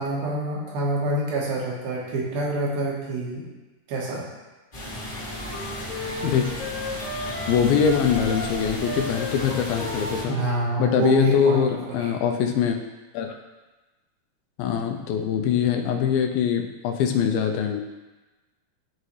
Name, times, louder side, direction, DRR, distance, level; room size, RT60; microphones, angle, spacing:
voice 1, 0.0-3.5 3.9-4.3 10.3-12.1, right 2 dB, 80° right, -3 dB, 3.2 m, -26 dB
sound 1, 4.7-10.2, equal, 30° left, 1.2 m, -34 dB
sound 2, 5.1-11.0, left 2 dB, 65° left, 2.1 m, -35 dB
voice 2, 7.5-10.4 10.8-12.8 13.1-13.4 14.6-17.8, left 7 dB, 80° left, 4 dB, 2.4 m, -23 dB
12.5 x 4.2 x 3.2 m, 1.2 s
omnidirectional pair, 4.3 m